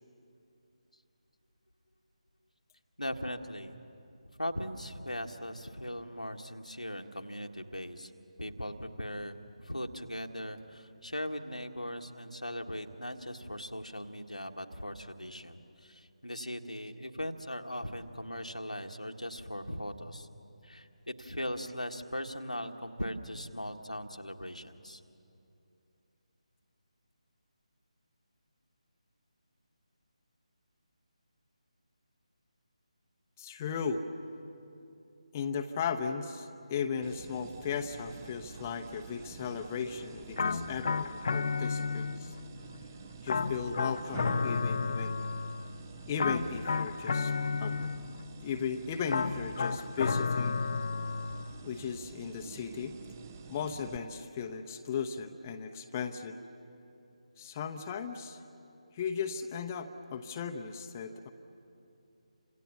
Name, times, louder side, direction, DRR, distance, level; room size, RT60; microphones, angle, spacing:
voice 1, 3.0-3.7 4.3-8.1 8.4-20.3 20.6-25.0, equal, 90° left, 4 dB, 1.7 m, -39 dB
voice 2, 33.4-34.0 35.3-42.3 43.2-45.2 46.1-47.3 47.6-47.8 48.4-50.6 51.6-52.9 53.5-56.4 57.4-58.4 58.9-61.3, left 6 dB, 20° left, 5 dB, 0.9 m, -36 dB
sound 1, 37.0-54.0, right 6 dB, 20° right, 0.9 m, -48 dB
sound 2, 40.4-42.4 43.3-45.7 46.2-48.3 49.1-51.5, left 4 dB, 45° left, 0.6 m, -32 dB
29.5 x 26.5 x 7.2 m, 2.8 s
figure-of-eight pair, 155°, 4 cm